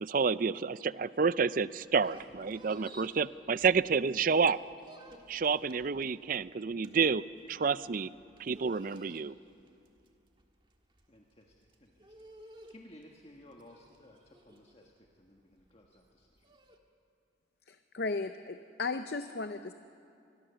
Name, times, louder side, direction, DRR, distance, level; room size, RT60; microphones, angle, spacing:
voice 1, 0.0-4.6 5.3-8.1 8.4-9.3, right 5 dB, 45° right, 16 dB, 0.4 m, -29 dB
sound 1, 1.8-4.2 4.5-16.8, right 1 dB, 25° right, 1.6 m, -56 dB
voice 2, 11.1-16.5, left 1 dB, 30° left, 0 dB, 1.6 m, -57 dB
voice 3, 17.7-19.7, left 3 dB, 55° left, 9 dB, 0.6 m, -36 dB
26.0 x 21.5 x 7.0 m, 2.6 s
head